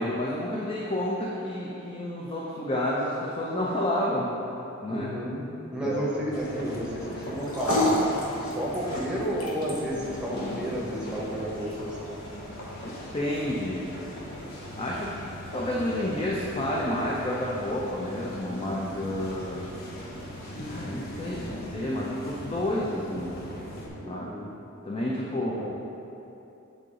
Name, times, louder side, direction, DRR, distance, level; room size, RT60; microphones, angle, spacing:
voice 1, 0.0-4.3 4.8-5.1 5.8-6.1 12.8-13.8 14.7-15.2 15.5-19.6 20.6-23.3 24.1-24.3 24.8-25.7, left 1 dB, 25° left, -4 dB, 0.5 m, -30 dB
voice 2, 4.9-8.0 8.4-12.0 24.0-24.5 25.4-25.7, equal, 5° right, -5 dB, 0.9 m, -32 dB
sound 1, 6.3-23.9, equal, 45° left, 0.8 m, -40 dB
sound 2, 7.2-23.7, left 1 dB, 75° left, 1.0 m, -36 dB
8.3 x 3.8 x 3.7 m, 2.9 s
head